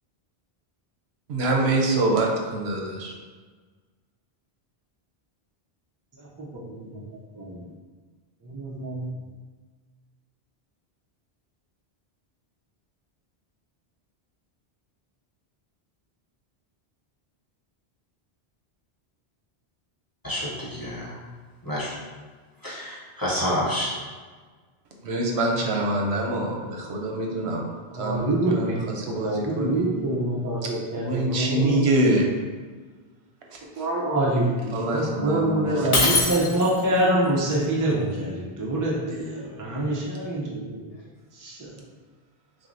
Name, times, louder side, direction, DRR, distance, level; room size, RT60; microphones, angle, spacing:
voice 1, 1.3-3.1 25.0-27.6 27.9-29.9 30.9-32.3 33.5-33.8 34.7-36.3, right 2 dB, 80° right, 0 dB, 0.9 m, -25 dB
voice 2, 6.2-7.0 7.3-7.7 8.4-9.0 27.9-31.8 33.8-40.9 41.4-41.7, right 1 dB, 25° right, -5 dB, 0.5 m, -26 dB
voice 3, 20.2-21.1 21.7-21.9 22.6-23.9, equal, 20° left, -8 dB, 0.9 m, -28 dB
Shatter, 35.9-37.0, left 3 dB, 45° left, 0.5 m, -23 dB
6.1 x 2.1 x 2.6 m, 1.4 s
omnidirectional pair, 1.1 m